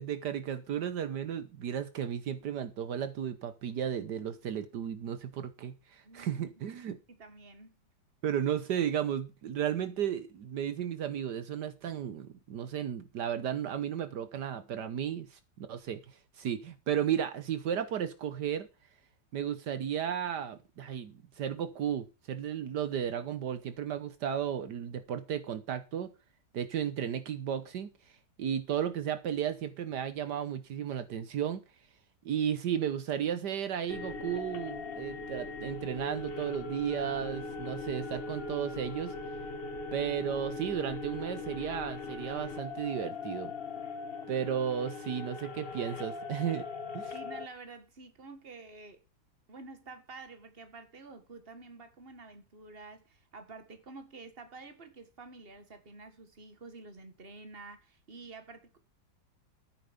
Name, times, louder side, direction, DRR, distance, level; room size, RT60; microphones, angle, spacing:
voice 1, 0.0-7.0 8.2-18.7 19.3-26.1 26.5-27.9 28.4-31.6 32.2-39.1 39.9-43.5 44.3-46.7 46.9-47.1, right 9 dB, 75° right, 1.6 m, -34 dB
voice 2, 6.0-6.5 6.7-7.8 47.1-49.0 49.5-58.8, right 3 dB, 35° right, 2.0 m, -49 dB
sound 1, 33.9-47.5, left 3 dB, 35° left, 1.2 m, -40 dB
13.5 x 9.5 x 5.2 m
omnidirectional pair, 1.9 m